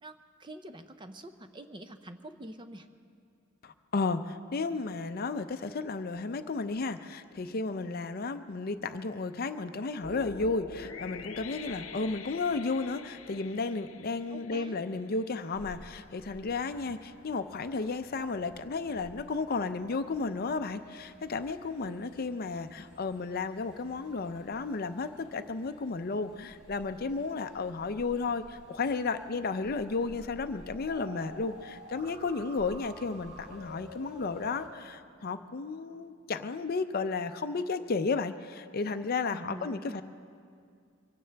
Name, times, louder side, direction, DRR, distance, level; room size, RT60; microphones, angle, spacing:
voice 1, 0.0-2.9 14.3-14.8 39.3-40.0, right 1 dB, 20° right, 8 dB, 0.6 m, -46 dB
voice 2, 3.6-40.0, left 4 dB, 45° left, 10 dB, 0.5 m, -33 dB
sound 1, 10.0-15.2, left 4 dB, 85° left, 0.8 m, -44 dB
sound 2, 15.5-34.7, equal, 5° right, 3.8 m, -56 dB
sound 3, 30.9-34.8, equal, 45° right, 1.5 m, -48 dB
24.0 x 16.5 x 3.4 m, 2.3 s
head